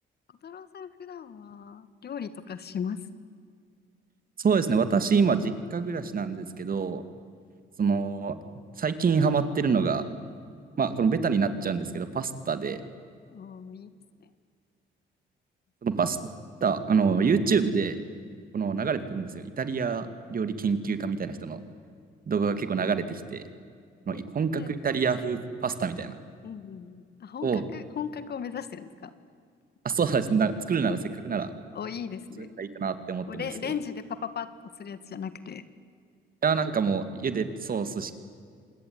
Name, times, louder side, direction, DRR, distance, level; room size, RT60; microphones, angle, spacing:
voice 1, 0.4-3.0 13.3-13.9 24.1-24.2 24.6-24.7 26.4-29.1 31.7-32.6 33.3-34.5 34.8-35.6, left 7 dB, 55° left, 13 dB, 1.8 m, -37 dB
voice 2, 4.4-7.0 7.8-8.4 8.8-10.1 10.8-12.8 15.8-16.2 16.6-18.0 18.5-21.6 22.3-23.4 24.1-26.2 27.4-27.6 29.8-31.5 32.4-33.7 36.4-38.2, right 5 dB, 45° right, 11 dB, 2.5 m, -26 dB
27.0 x 21.0 x 9.7 m, 2.2 s
cardioid pair, 90°, 20 cm